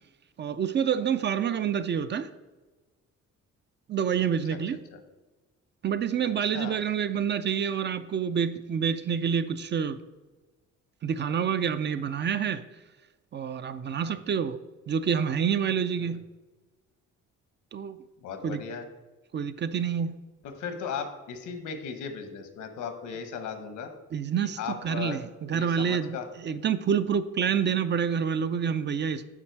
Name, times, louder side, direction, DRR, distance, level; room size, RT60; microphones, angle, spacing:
voice 1, 0.4-2.3 3.9-4.8 5.8-10.0 11.0-12.6 13.3-14.6 14.9-16.2 17.7-18.0 18.4-18.6 19.3-20.2 24.1-26.2 26.4-29.2, right 7 dB, 40° right, 12 dB, 0.4 m, -27 dB
voice 2, 6.4-6.8 14.0-14.1 18.2-18.9 20.4-23.9 24.6-25.2 25.5-26.3, left 6 dB, 75° left, 7 dB, 1.0 m, -36 dB
7.4 x 4.3 x 4.6 m, 1.2 s
cardioid pair, 90°, 30 cm